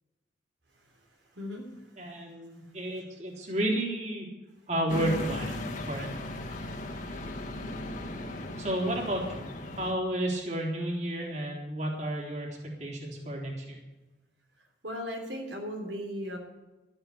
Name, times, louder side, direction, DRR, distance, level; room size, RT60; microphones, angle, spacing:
voice 1, 2.0-4.3 4.7-5.6 5.9-6.1 8.6-9.4 9.8-12.5 12.8-13.8, right 1 dB, 40° right, -2 dB, 3.6 m, -31 dB
sound 1, 4.9-9.9, left 1 dB, 45° left, 1.6 m, -37 dB
voice 2, 14.8-16.4, equal, 85° right, 1 dB, 3.4 m, -36 dB
13.0 x 8.8 x 8.6 m, 1.1 s
head